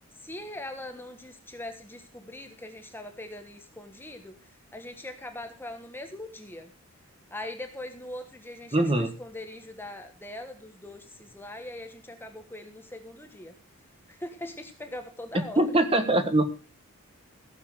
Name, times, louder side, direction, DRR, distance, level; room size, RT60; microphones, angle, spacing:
voice 1, 0.2-4.3 4.7-6.7 7.3-13.5 14.1-15.6, left 1 dB, 10° left, 6 dB, 1.3 m, -41 dB
voice 2, 8.7-9.1 15.3-16.6, right 1 dB, 25° right, 8 dB, 1.4 m, -23 dB
15.5 x 7.3 x 6.3 m, 0.35 s
head